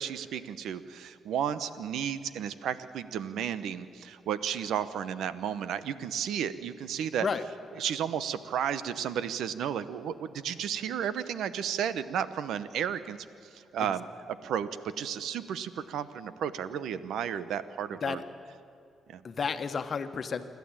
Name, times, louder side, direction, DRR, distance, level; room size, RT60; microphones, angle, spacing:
voice 1, 0.0-7.3 7.8-13.2 13.5-18.2 19.1-19.2, right 8 dB, 80° right, 14 dB, 0.9 m, -33 dB
voice 2, 19.2-20.4, left 5 dB, 50° left, 9 dB, 1.4 m, -32 dB
28.0 x 12.0 x 8.9 m, 2.5 s
cardioid pair, 70°, 0 cm